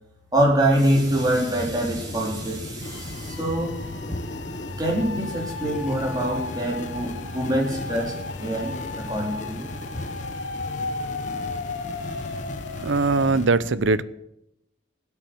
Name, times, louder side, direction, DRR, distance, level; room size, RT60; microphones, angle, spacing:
voice 1, 0.3-3.8 4.8-8.1 8.4-10.0, right 1 dB, 20° right, -2 dB, 3.8 m, -25 dB
sound 1, 0.9-13.5, left 2 dB, 40° left, 0.8 m, -36 dB
sound 2, 2.8-13.3, left 3 dB, 70° left, 1.4 m, -35 dB
voice 2, 12.8-14.0, right 3 dB, 80° right, 16 dB, 0.7 m, -21 dB
17.5 x 8.4 x 7.8 m, 0.82 s
head